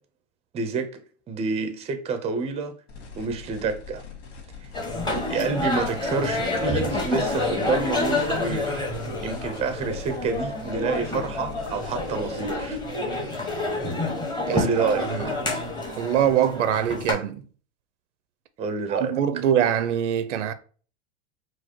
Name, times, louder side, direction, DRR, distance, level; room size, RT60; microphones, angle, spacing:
voice 1, 0.5-0.9 1.3-2.7 3.2-4.0 5.3-8.8 9.2-12.8 14.5-15.4 18.6-19.2, right 4 dB, 20° right, 0.6 m, -28 dB
sound 1, 2.9-12.9, left 6 dB, 65° left, 1.9 m, -42 dB
sound 2, 4.7-17.1, left 2 dB, 10° left, 1.1 m, -28 dB
voice 2, 16.0-17.4 18.9-20.5, right 9 dB, 85° right, 0.7 m, -23 dB
4.9 x 2.0 x 4.4 m
supercardioid pair, 130°, 35 cm